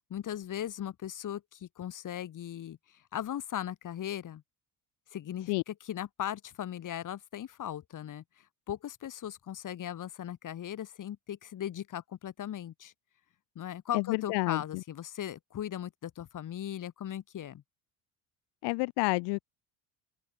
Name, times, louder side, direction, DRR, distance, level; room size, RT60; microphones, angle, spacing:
voice 1, 0.1-2.8 3.1-4.4 5.1-8.2 8.7-12.9 13.6-17.6, left 10 dB, 45° left, 2.1 m, -38 dB
voice 2, 13.9-14.8 18.6-19.5, left 29 dB, 80° left, 0.7 m, -29 dB
open air
supercardioid pair, 90°, 41 cm